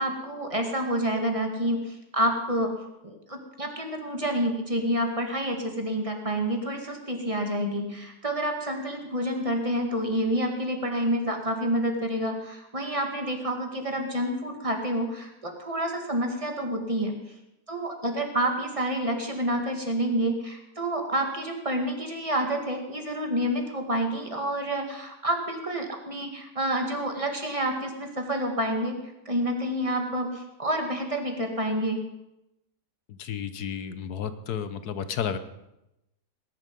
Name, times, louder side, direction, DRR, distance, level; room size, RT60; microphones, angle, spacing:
voice 1, 0.0-2.7 3.0-17.1 17.7-29.0 29.3-32.0, right 1 dB, 20° right, 3 dB, 2.0 m, -28 dB
voice 2, 33.1-35.4, left 8 dB, 70° left, 12 dB, 1.4 m, -32 dB
19.0 x 11.0 x 5.3 m, 0.90 s
omnidirectional pair, 1.8 m